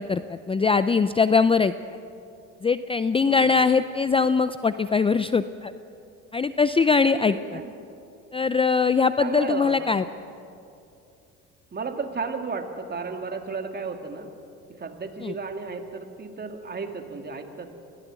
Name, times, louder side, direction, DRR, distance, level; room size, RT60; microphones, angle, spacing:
voice 1, 0.0-1.7 2.6-5.7 6.3-7.6 8.3-10.0 15.2-15.3, left 5 dB, 20° left, 12 dB, 0.5 m, -22 dB
voice 2, 7.1-7.7 9.2-10.0 11.7-14.3 14.8-17.7, right 4 dB, 30° right, 5 dB, 2.3 m, -33 dB
20.5 x 15.5 x 8.2 m, 2.6 s
supercardioid pair, 85°, 31 cm